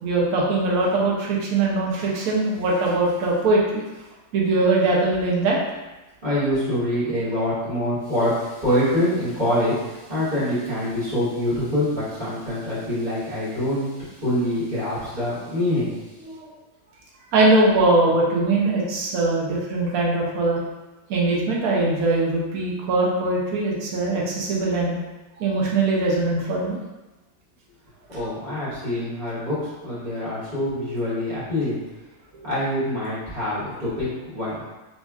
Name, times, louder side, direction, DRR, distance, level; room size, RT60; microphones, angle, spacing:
voice 1, 0.0-3.8 4.3-5.6 16.2-16.5 17.3-20.6 21.1-24.9 25.4-26.8 28.1-28.2, right 2 dB, 90° right, -3 dB, 1.1 m, -21 dB
voice 2, 6.2-16.1 28.1-31.8 32.4-34.6, left 1 dB, 35° right, -11 dB, 1.3 m, -25 dB
3.0 x 2.7 x 2.3 m, 1.1 s
omnidirectional pair, 1.5 m